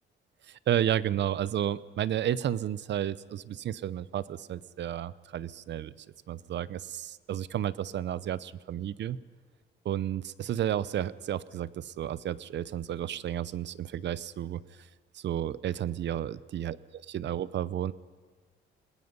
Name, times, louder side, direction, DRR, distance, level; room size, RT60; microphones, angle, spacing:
voice 1, 0.5-5.9 6.3-9.2 9.8-14.6 15.1-17.9, right 10 dB, 65° right, 18 dB, 0.7 m, -32 dB
27.5 x 20.0 x 5.5 m, 1.4 s
cardioid pair, 90°, 20 cm